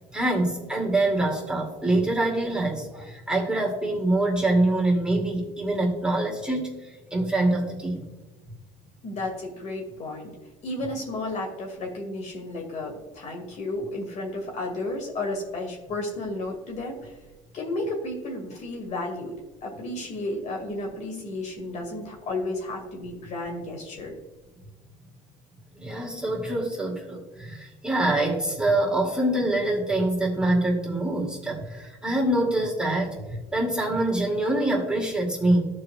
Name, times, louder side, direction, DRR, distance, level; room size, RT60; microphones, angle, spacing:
voice 1, 0.1-6.8 7.1-8.0 25.7-33.1 33.5-35.6, right 1 dB, 5° right, -2 dB, 2.4 m, -25 dB
voice 2, 9.0-10.3 10.6-17.1 17.5-19.3 19.6-24.1, left 2 dB, 50° left, 1 dB, 2.2 m, -32 dB
14.5 x 4.8 x 2.3 m, 1.2 s
supercardioid pair, 85°, 16 cm